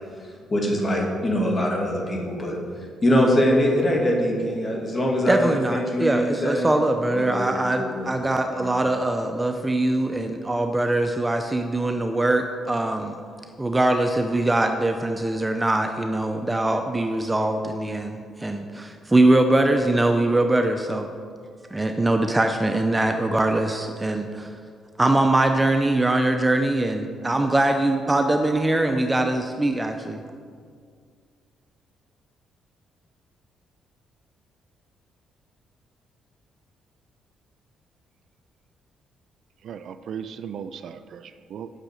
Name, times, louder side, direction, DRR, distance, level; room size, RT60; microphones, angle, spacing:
voice 1, 0.5-2.6 3.0-6.7 7.1-7.5 7.8-8.1, equal, 30° left, -1 dB, 2.4 m, -23 dB
voice 2, 5.3-13.1 13.6-21.1 21.7-24.5 25.0-30.2, right 2 dB, 15° right, 5 dB, 0.6 m, -22 dB
voice 3, 39.6-41.7, right 7 dB, 65° right, 11 dB, 0.4 m, -37 dB
9.0 x 6.5 x 6.5 m, 2.1 s
cardioid pair, 90°, 0 cm